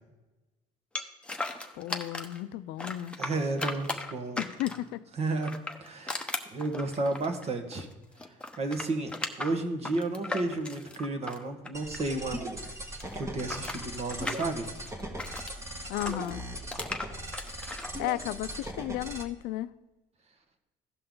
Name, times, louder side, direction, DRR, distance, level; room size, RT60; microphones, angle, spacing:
sound 1, 1.0-2.4 2.8-4.9 5.4-7.9 8.2-12.4 12.6-15.5 16.0-17.9, left 2 dB, 5° left, 0.9 m, -37 dB
voice 1, 1.7-3.2 4.4-5.0 15.9-16.4 18.0-19.7, left 15 dB, 70° left, 15 dB, 0.5 m, -34 dB
voice 2, 3.2-4.4 5.2-5.5 5.8-7.9 8.6-9.1 9.4-12.7 13.1-14.7, right 2 dB, 40° right, 6 dB, 1.5 m, -32 dB
sound 2, 11.7-19.2, right 1 dB, 15° right, 1.4 m, -39 dB
15.5 x 5.6 x 3.9 m, 1.1 s
supercardioid pair, 105°, 17 cm